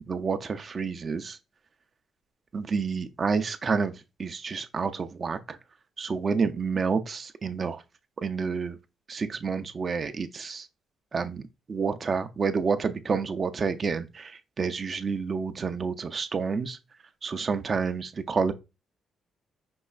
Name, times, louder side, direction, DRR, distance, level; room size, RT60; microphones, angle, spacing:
voice 1, 0.1-1.4 2.5-5.6 6.0-7.8 8.2-8.8 9.1-10.7 11.1-11.4 11.7-16.8 17.2-18.5, right 5 dB, 40° right, 0.4 m, -29 dB
5.3 x 3.0 x 2.4 m
cardioid pair, 90°, 0 cm